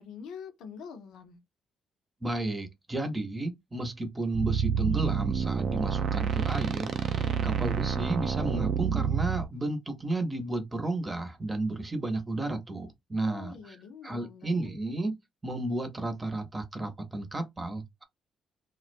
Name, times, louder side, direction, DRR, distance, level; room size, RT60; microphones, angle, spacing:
voice 1, 0.0-1.4 7.2-7.6 13.2-14.7, left 6 dB, 85° left, 0.7 m, -45 dB
voice 2, 2.2-7.2 7.4-13.8 14.0-15.2 15.4-18.0, right 2 dB, 20° right, 0.8 m, -32 dB
sound 1, 4.3-9.4, right 7 dB, 60° right, 0.4 m, -28 dB
2.3 x 2.1 x 2.5 m
cardioid pair, 90°, 0 cm